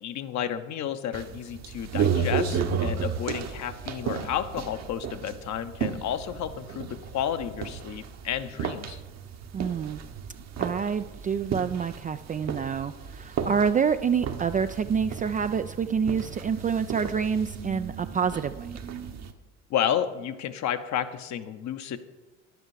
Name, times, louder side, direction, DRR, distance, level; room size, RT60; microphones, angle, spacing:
voice 1, 0.0-9.0 19.7-22.0, left 9 dB, 50° left, 10 dB, 0.9 m, -31 dB
sound 1, 1.1-19.3, right 7 dB, 45° right, 1.0 m, -33 dB
voice 2, 9.5-10.0 10.6-18.7, right 6 dB, 25° right, 10 dB, 0.3 m, -27 dB
10.5 x 8.1 x 4.9 m, 1.1 s
hypercardioid pair, 60°, 37 cm